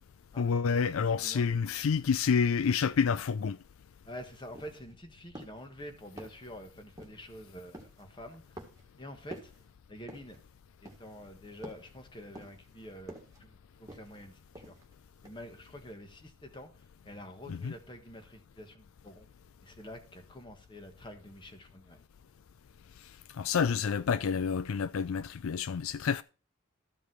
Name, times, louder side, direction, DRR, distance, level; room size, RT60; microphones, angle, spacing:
voice 1, 0.4-3.6 17.5-17.7 23.4-26.2, left 6 dB, 75° left, 0.4 m, -28 dB
voice 2, 1.0-1.5 4.0-8.6 9.0-9.5 9.9-10.4 10.8-14.7 15.2-19.3 19.6-22.0, equal, 20° left, 1.4 m, -47 dB
sound 1, 4.1-4.2 4.5-4.9 5.3-5.7 6.2-6.5 7.0-7.3 7.7-8.0 8.6-8.9 9.3-9.6 10.1-10.4 10.9-11.2 11.6-11.9 12.3-12.7 13.1-13.4 13.9-14.2 14.5-14.9 15.2-15.3, right 1 dB, 15° right, 1.8 m, -48 dB
13.0 x 5.3 x 4.6 m
head